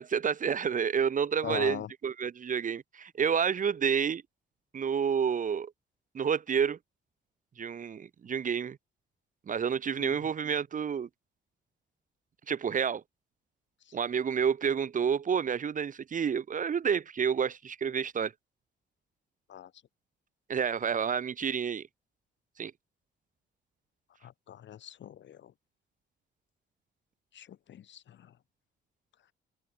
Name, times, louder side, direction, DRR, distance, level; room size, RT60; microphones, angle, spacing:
voice 1, 0.0-4.2 4.7-5.7 6.1-6.8 7.6-8.8 9.5-11.1 12.5-13.0 13.9-18.3 20.5-21.9 22.6-22.7, right 7 dB, 40° right, 0.9 m, -29 dB
voice 2, 1.4-1.9 10.0-10.2 13.9-14.0 19.5-19.7 24.2-25.5 27.3-28.3, left 10 dB, 65° left, 3.9 m, -41 dB
cardioid pair, 90°, 20 cm